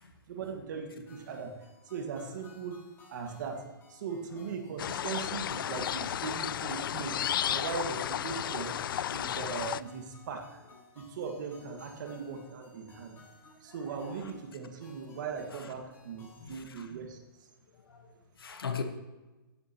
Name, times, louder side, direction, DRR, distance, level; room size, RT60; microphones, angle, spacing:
voice 1, 0.3-1.5 1.9-2.8 3.1-3.6 3.9-7.2 7.5-8.8 9.1-10.6 11.0-13.2 13.6-17.2, right 5 dB, 55° right, 3 dB, 1.8 m, -39 dB
sound 1, 1.1-16.5, left 3 dB, 20° left, 4.7 m, -58 dB
sound 2, 4.8-9.8, left 10 dB, 70° left, 0.4 m, -33 dB
voice 2, 13.6-14.3 15.5-15.7 16.3-16.9 17.7-18.8, left 6 dB, 85° left, 6 dB, 1.4 m, -42 dB
17.0 x 11.0 x 3.0 m, 1.1 s
hypercardioid pair, 140°, 12 cm